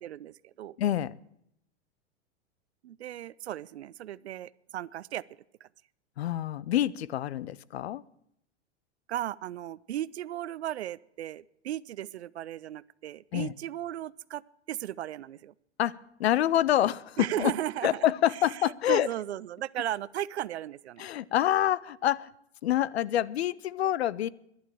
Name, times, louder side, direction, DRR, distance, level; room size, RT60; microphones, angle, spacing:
voice 1, 0.0-0.8 2.8-5.2 5.6-5.7 9.1-14.4 14.7-15.5 17.2-18.6 18.9-21.1, right 12 dB, 75° right, 21 dB, 0.5 m, -36 dB
voice 2, 0.8-1.1 6.2-8.0 13.3-13.5 15.8-17.5 17.8-19.1 21.0-22.3 22.6-24.3, left 12 dB, 70° left, 21 dB, 0.6 m, -27 dB
11.0 x 11.0 x 8.6 m, 0.76 s
figure-of-eight pair, 95°, 33 cm